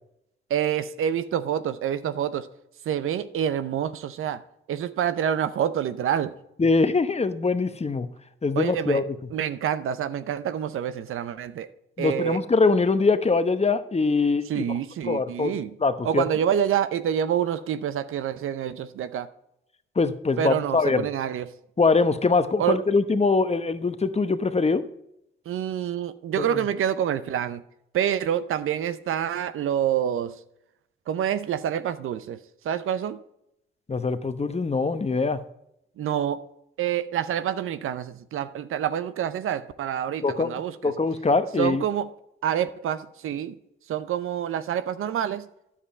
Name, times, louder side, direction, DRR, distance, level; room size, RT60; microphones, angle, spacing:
voice 1, 0.5-2.5 2.8-4.4 4.7-6.4 8.6-9.0 9.3-11.7 12.0-12.4 14.5-15.7 16.0-19.3 20.4-21.5 22.6-22.8 25.5-27.6 27.9-30.4 31.1-32.4 32.6-33.2 36.0-36.5 36.8-40.9 41.6-42.1 42.4-43.6 43.9-45.5, right 9 dB, 80° right, 0.6 m, -27 dB
voice 2, 6.6-8.1 8.4-9.1 12.0-14.7 15.0-16.2 20.0-21.0 21.8-24.8 26.4-26.6 33.9-35.4 40.2-40.5 40.8-41.8, left 4 dB, 30° left, 0.9 m, -23 dB
9.9 x 7.4 x 4.3 m
cardioid pair, 55°, 21 cm